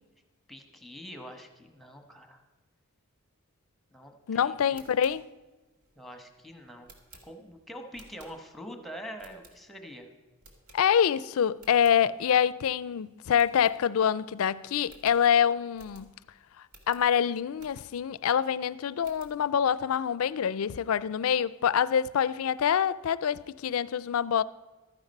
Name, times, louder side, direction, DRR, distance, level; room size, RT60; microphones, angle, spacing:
voice 1, 0.5-2.4 3.9-4.8 6.0-6.9 7.2-10.1, equal, ahead, 1.1 m, -45 dB
voice 2, 4.3-5.3 10.7-16.1 16.9-24.4, left 8 dB, 70° left, 0.4 m, -26 dB
sound 1, 4.6-8.7 9.2-9.9 10.4-11.2 11.5-12.0 12.4-12.5 12.8-12.9 13.3-14.2 14.5-14.6 14.8-18.1 18.6-19.4, right 2 dB, 75° right, 2.0 m, -57 dB
13.0 x 9.8 x 5.4 m
head